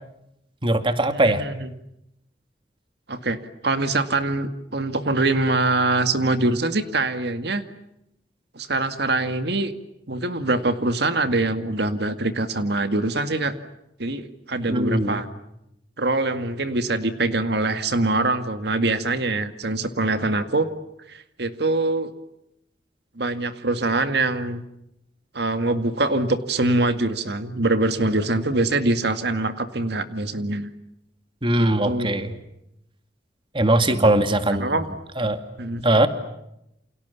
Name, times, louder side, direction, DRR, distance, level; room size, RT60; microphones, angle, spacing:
voice 1, 0.6-1.4 14.7-15.2 31.4-32.3 33.5-34.7 35.2-35.4 35.8-36.1, right 1 dB, 30° right, 9 dB, 2.3 m, -20 dB
voice 2, 1.1-1.7 3.1-7.6 8.5-9.7 10.1-13.5 14.0-15.3 16.0-20.7 21.1-22.1 23.2-24.6 25.3-30.7 31.6-32.4 33.7-34.1 34.5-34.9 35.6-35.8, right 2 dB, 65° right, 9 dB, 2.1 m, -24 dB
29.5 x 28.5 x 7.1 m, 0.83 s
head